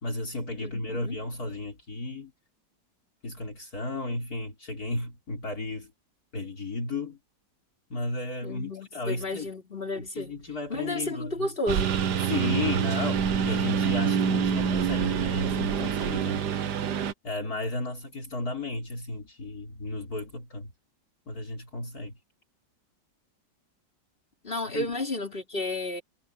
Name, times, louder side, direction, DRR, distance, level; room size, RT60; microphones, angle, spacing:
voice 1, 0.0-2.3 3.2-5.9 6.3-7.2 7.9-9.5 10.0-11.5 12.2-16.5 17.2-20.7 21.3-22.1 24.7-24.9, left 2 dB, 55° left, 4.1 m, -34 dB
voice 2, 0.6-1.2 8.4-10.3 10.7-12.0 24.4-26.0, left 2 dB, 30° left, 5.7 m, -32 dB
Engine, 11.7-17.1, right 7 dB, 65° right, 1.6 m, -26 dB
omnidirectional pair, 2.0 m